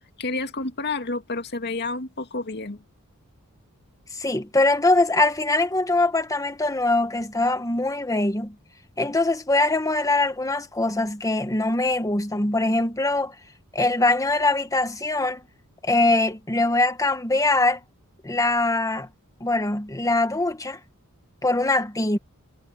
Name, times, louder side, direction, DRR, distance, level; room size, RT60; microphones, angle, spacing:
voice 1, 0.2-2.8, left 3 dB, 50° left, 2.0 m, -30 dB
voice 2, 4.1-8.5 9.0-13.3 13.7-15.4 15.8-17.8 18.2-19.1 19.4-20.8 21.4-22.2, left 2 dB, 15° left, 1.4 m, -22 dB
head